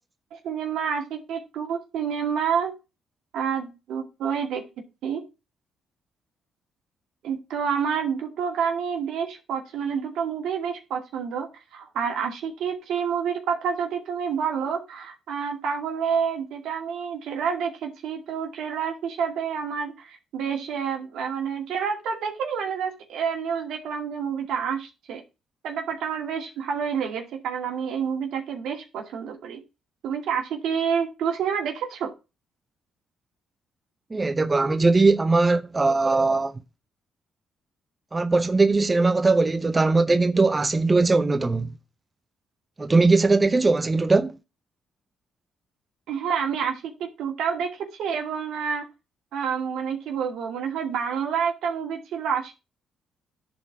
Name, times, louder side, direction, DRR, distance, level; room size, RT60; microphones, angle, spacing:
voice 1, 0.3-2.7 3.3-4.6 5.0-5.2 7.2-25.2 25.6-29.6 30.0-32.1 46.1-48.9 49.3-52.5, right 7 dB, 80° right, 2.3 m, -28 dB
voice 2, 34.1-36.5 38.1-41.7 42.8-44.4, right 3 dB, 25° right, 0.7 m, -20 dB
10.5 x 4.4 x 4.7 m
cardioid pair, 90°, 0 cm